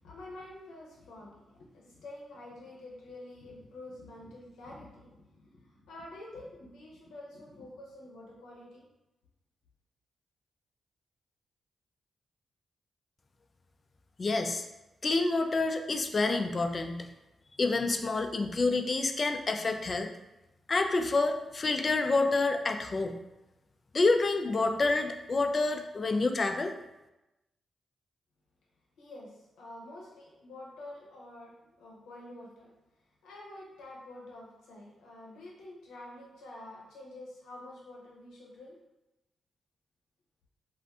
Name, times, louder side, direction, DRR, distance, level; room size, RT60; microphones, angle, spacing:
voice 1, 0.0-8.9 29.0-32.7 33.2-38.8, left 1 dB, 85° left, -3 dB, 0.7 m, -48 dB
voice 2, 14.2-14.7 15.0-17.1 17.6-20.1 20.7-23.2 23.9-26.7, left 3 dB, 45° left, 6 dB, 0.3 m, -28 dB
2.5 x 2.4 x 3.4 m, 0.98 s
supercardioid pair, 45°, 0 cm